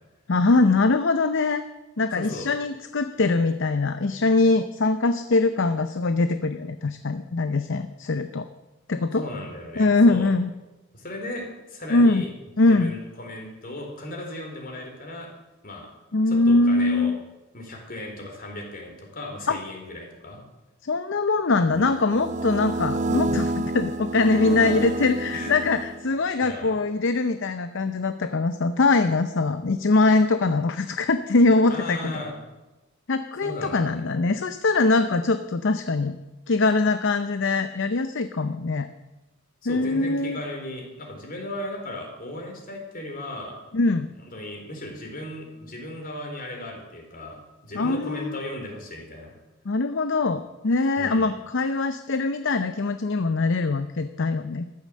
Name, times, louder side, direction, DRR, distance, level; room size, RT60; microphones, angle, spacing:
voice 1, 0.3-1.6 2.0-8.5 8.9-9.2 9.8-10.5 11.9-12.2 12.6-13.0 16.1-17.2 19.5-19.6 20.8-32.2 33.1-36.2 36.5-38.9 39.7-40.4 43.7-44.1 47.7-48.4 49.7-54.7, left 3 dB, 60° left, 10 dB, 0.6 m, -22 dB
voice 2, 2.2-2.5 9.2-10.3 10.9-12.3 12.7-15.3 15.6-15.9 16.3-17.1 17.5-20.4 24.3-24.7 25.3-25.5 26.4-26.8 31.7-32.3 33.4-34.0 39.6-43.6 44.3-49.3 51.0-51.3, left 1 dB, 40° left, 2 dB, 3.8 m, -36 dB
sound 1, 21.7-26.3, right 2 dB, 35° right, 0.5 m, -29 dB
13.5 x 12.0 x 7.5 m, 1.1 s
head